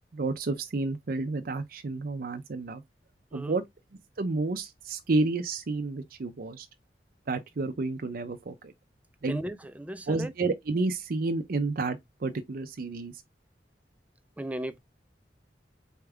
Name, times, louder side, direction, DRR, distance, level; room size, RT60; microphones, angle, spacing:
voice 1, 0.1-2.8 3.3-3.6 4.2-6.7 7.3-8.7 9.2-9.4 10.1-13.2, right 3 dB, 55° right, 0.5 m, -30 dB
voice 2, 9.3-10.3 14.4-14.8, right 1 dB, 10° right, 0.5 m, -36 dB
4.5 x 3.5 x 3.3 m
head